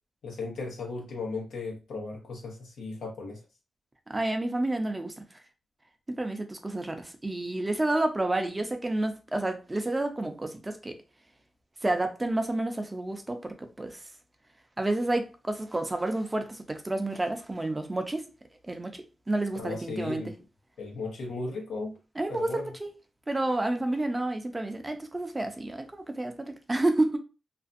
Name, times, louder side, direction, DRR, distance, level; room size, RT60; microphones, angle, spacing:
voice 1, 0.2-3.4 19.5-20.3 20.8-22.0 22.3-22.7, left 3 dB, 90° left, 0.8 m, -36 dB
voice 2, 4.1-5.1 6.1-11.0 11.8-14.0 14.8-18.3 18.6-20.3 22.2-23.0 23.3-27.2, right 2 dB, 20° right, 0.5 m, -30 dB
2.5 x 2.2 x 2.5 m
cardioid pair, 75°, 0 cm